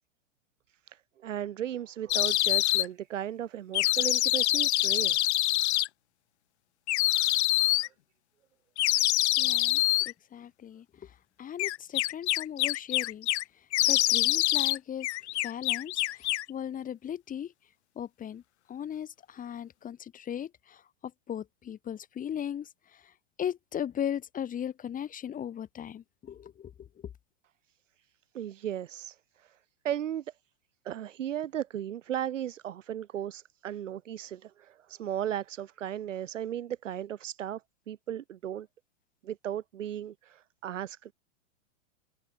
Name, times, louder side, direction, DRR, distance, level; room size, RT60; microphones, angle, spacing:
voice 1, 0.9-5.3 28.3-29.6 29.8-30.3 30.9-37.6 37.9-38.7 39.2-41.1, right 10 dB, 80° right, 5.4 m, -36 dB
sound 1, 2.1-2.9 3.7-5.9 6.9-7.9 8.8-10.1 11.6-13.4 13.7-14.8 15.0-16.5, left 16 dB, 60° left, 4.8 m, -25 dB
voice 2, 9.4-10.8 11.4-13.3 13.9-15.1 15.4-16.2 16.5-17.5 18.0-18.4 18.7-20.8 21.3-22.7 23.4-26.9, left 9 dB, 20° left, 4.0 m, -37 dB
hypercardioid pair, 130°, 37 cm